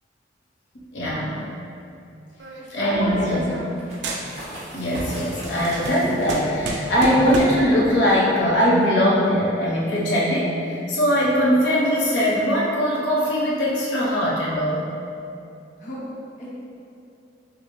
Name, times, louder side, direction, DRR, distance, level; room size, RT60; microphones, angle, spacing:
voice 1, 0.9-1.3 2.7-3.4 4.7-14.8, equal, 75° left, -7 dB, 0.8 m, -21 dB
voice 2, 2.3-3.7 15.8-16.1 16.4-16.5, equal, 45° left, -8 dB, 0.8 m, -32 dB
sound 1, 2.4-3.8 4.0-4.7 5.0-7.7, right 2 dB, 70° right, 0.5 m, -31 dB
sound 2, 3.7-9.0, right 1 dB, 40° right, 1.2 m, -39 dB
6.0 x 2.0 x 3.1 m, 2.6 s
head